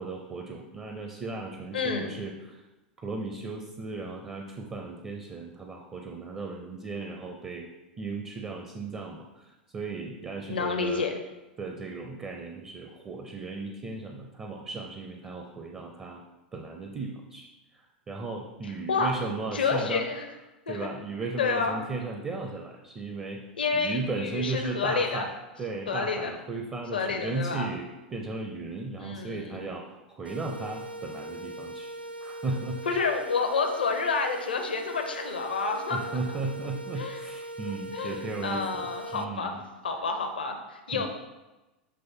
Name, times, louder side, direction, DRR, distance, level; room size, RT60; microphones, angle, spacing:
voice 1, 0.0-2.6 3.0-7.7 8.0-9.4 9.7-11.1 11.6-16.2 16.5-17.5 17.7-20.0 20.7-23.4 23.7-25.3 25.6-31.9 32.2-32.8 35.9-38.9 39.1-39.6 40.9-41.1, right 3 dB, 25° right, 3 dB, 0.7 m, -36 dB
voice 2, 1.7-2.1 10.5-11.2 18.6-19.1 19.5-20.2 20.7-20.9 21.4-21.7 23.6-25.3 25.9-26.3 26.9-27.7 29.0-29.6 32.9-36.2 37.0-37.2 37.9-39.6 39.8-41.1, left 4 dB, 75° left, 3 dB, 0.8 m, -29 dB
sound 1, 30.2-39.2, right 1 dB, 90° right, 0.4 m, -40 dB
7.6 x 3.1 x 4.5 m, 1.1 s
figure-of-eight pair, 90°, 5 cm